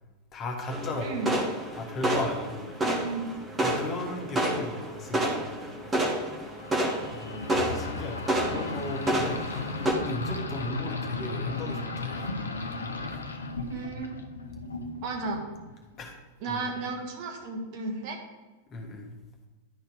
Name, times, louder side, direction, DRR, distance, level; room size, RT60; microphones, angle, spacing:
voice 1, 0.3-1.2 1.7-2.7 3.6-5.6 5.8-6.0 7.2-12.3 16.0-16.2 16.5-16.6 18.7-19.2, left 2 dB, 30° left, 2 dB, 1.5 m, -36 dB
sound 1, 0.7-9.9, right 1 dB, 15° right, 1.4 m, -30 dB
voice 2, 1.0-1.3 2.8-3.3 13.7-14.2 15.0-15.4 16.4-18.2, right 3 dB, 45° right, 1 dB, 1.7 m, -34 dB
sound 2, 6.5-15.8, left 3 dB, 75° left, 0.7 m, -36 dB
11.0 x 4.4 x 4.9 m, 1.2 s
figure-of-eight pair, 90°, 0 cm